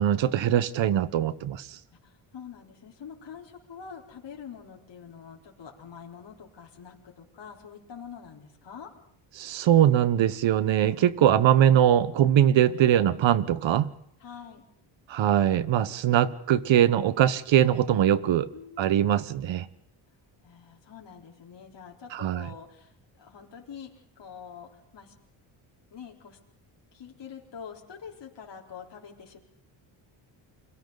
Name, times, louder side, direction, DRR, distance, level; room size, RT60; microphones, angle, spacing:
voice 1, 0.0-1.7 9.4-13.9 15.1-18.5 18.8-19.7 22.1-22.5, right 10 dB, 65° right, 1.3 m, -22 dB
voice 2, 2.0-8.9 11.6-11.9 14.2-14.6 18.5-18.9 20.4-25.1 25.9-26.4 26.9-29.4, left 7 dB, 55° left, 4.1 m, -45 dB
30.0 x 22.5 x 4.1 m
cardioid pair, 85°, 49 cm